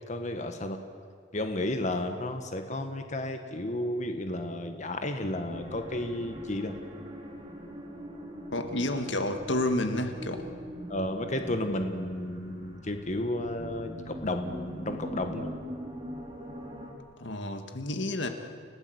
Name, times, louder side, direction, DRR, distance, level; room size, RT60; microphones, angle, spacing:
voice 1, 0.1-0.8 1.3-6.8 10.9-15.5, left 1 dB, 40° left, 6 dB, 1.6 m, -32 dB
sound 1, 5.5-16.9, equal, 25° right, 3.7 m, -42 dB
voice 2, 8.5-10.5 17.2-18.3, left 1 dB, 80° left, 7 dB, 1.9 m, -30 dB
30.0 x 17.0 x 8.1 m, 2.1 s
head